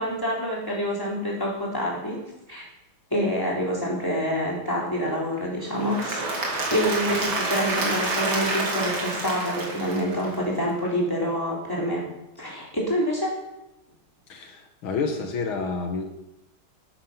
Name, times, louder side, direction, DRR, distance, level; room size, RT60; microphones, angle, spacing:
voice 1, 0.0-2.2 2.5-2.6 3.1-6.2 6.7-12.0 12.4-13.4, equal, 10° left, -4 dB, 3.7 m, -27 dB
Applause / Crowd, 5.7-10.6, right 2 dB, 70° right, 3.2 m, -28 dB
voice 2, 14.3-16.0, left 4 dB, 80° left, 4 dB, 2.1 m, -29 dB
12.5 x 9.2 x 5.7 m, 0.93 s
omnidirectional pair, 2.2 m